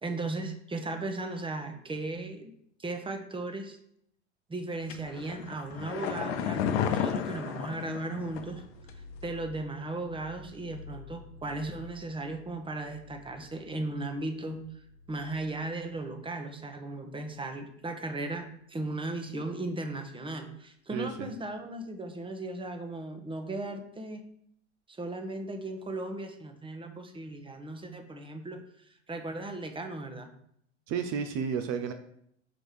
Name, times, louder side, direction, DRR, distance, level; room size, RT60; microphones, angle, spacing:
voice 1, 0.0-2.5 2.8-3.8 4.5-8.6 8.9-14.6 15.1-24.2 24.9-30.3, right 2 dB, 15° right, 6 dB, 1.1 m, -36 dB
sound 1, 4.9-8.6 8.9-9.0, left 8 dB, 60° left, 0.8 m, -32 dB
sound 2, 8.2-17.6 18.0-18.4 19.1-19.4, left 4 dB, 70° right, 1.2 m, -51 dB
voice 2, 20.9-21.3 30.9-31.9, right 7 dB, 50° right, 7 dB, 0.8 m, -32 dB
6.1 x 5.1 x 4.8 m, 0.70 s
figure-of-eight pair, 70°, 34 cm